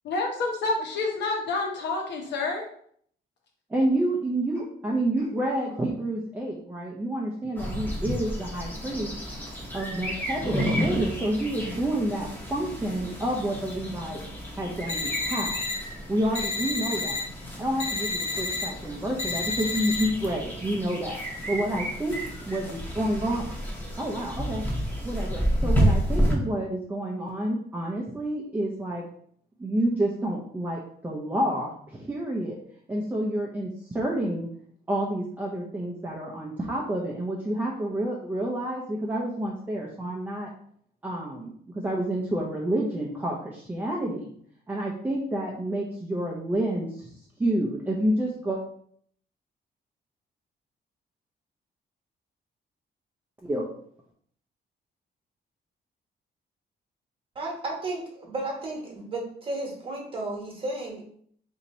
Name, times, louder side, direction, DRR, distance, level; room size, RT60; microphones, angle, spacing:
voice 1, 0.0-2.6, left 3 dB, 75° left, 0 dB, 1.0 m, -28 dB
voice 2, 3.7-9.1 9.7-14.2 14.6-15.5 16.1-17.2 17.6-21.2 21.5-22.2 22.5-23.4 24.0-24.6 25.0-29.0 29.6-32.6 32.9-34.5 34.9-40.5 41.0-44.3 44.7-47.1 47.4-48.6 53.4-53.7, right 1 dB, 10° right, -2 dB, 0.5 m, -29 dB
sound 1, 7.6-26.3, equal, 10° left, 0.8 m, -31 dB
sound 2, 14.9-15.8 16.3-17.2 17.8-18.7 19.2-20.0, left 3 dB, 35° left, 1.0 m, -30 dB
voice 3, 57.3-61.0, right 2 dB, 30° right, -1 dB, 1.1 m, -33 dB
2.8 x 2.6 x 4.1 m, 0.62 s
cardioid pair, 150°, 18 cm